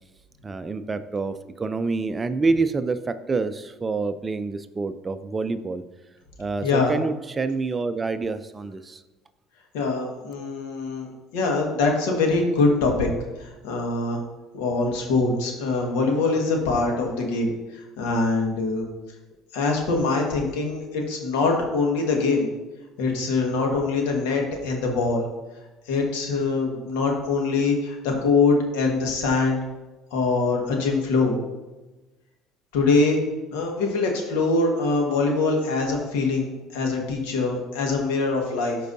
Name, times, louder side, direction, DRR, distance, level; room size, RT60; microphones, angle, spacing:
voice 1, 0.4-5.8 6.4-9.0, right 3 dB, 25° right, 11 dB, 0.5 m, -27 dB
voice 2, 6.6-6.9 9.7-13.1 13.4-14.2 14.5-18.9 19.5-22.5 23.0-25.3 25.9-29.6 30.1-31.4 32.7-33.2 33.5-38.8, left 3 dB, 85° left, 1 dB, 1.5 m, -23 dB
13.0 x 4.6 x 2.7 m, 1.1 s
supercardioid pair, 90°, 0 cm